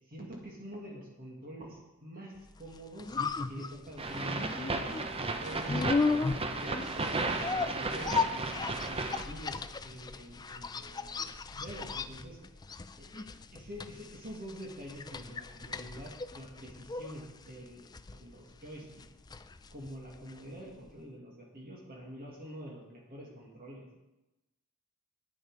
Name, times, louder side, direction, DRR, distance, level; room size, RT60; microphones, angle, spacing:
voice 1, 0.1-3.2 3.5-8.5 8.8-12.4 13.0-19.0 19.7-23.9, equal, 45° right, -2 dB, 2.2 m, -46 dB
sound 1, 2.6-20.6 20.9-21.0, left 4 dB, 20° left, 0.4 m, -36 dB
sound 2, 4.0-9.2, right 3 dB, 25° right, 0.7 m, -34 dB
11.0 x 9.7 x 4.8 m, 0.98 s
head